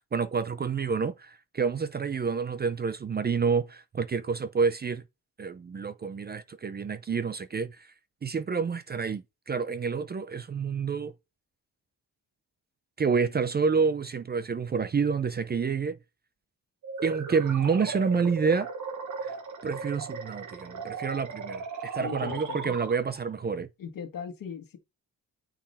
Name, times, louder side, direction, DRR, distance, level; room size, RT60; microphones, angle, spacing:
voice 1, 0.0-5.0 5.4-7.9 8.2-11.1 13.0-16.0 17.0-18.7 19.2-19.3 19.6-23.7, right 5 dB, 30° right, 0.5 m, -28 dB
sound 1, 16.8-23.3, right 4 dB, 55° right, 1.4 m, -37 dB
voice 2, 22.0-22.8 23.8-24.8, left 7 dB, 65° left, 1.5 m, -38 dB
8.9 x 4.7 x 4.2 m
cardioid pair, 135°, 36 cm